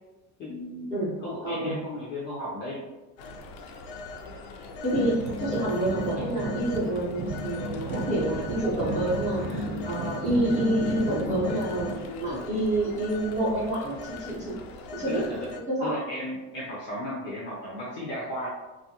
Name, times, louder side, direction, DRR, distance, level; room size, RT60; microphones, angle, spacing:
voice 1, 0.4-2.8 11.5-11.6 15.1-15.5 15.8-18.5, left 1 dB, 30° left, -6 dB, 0.5 m, -35 dB
voice 2, 1.4-1.7 4.8-14.5 14.9-15.2 15.7-16.0, right 1 dB, 20° right, -7 dB, 0.6 m, -28 dB
Telephone, 3.2-15.6, left 3 dB, 85° left, 0.5 m, -40 dB
sound 1, 4.9-11.9, right 1 dB, 80° right, 0.8 m, -33 dB
2.6 x 2.4 x 2.7 m, 1.1 s
cardioid pair, 180°, 41 cm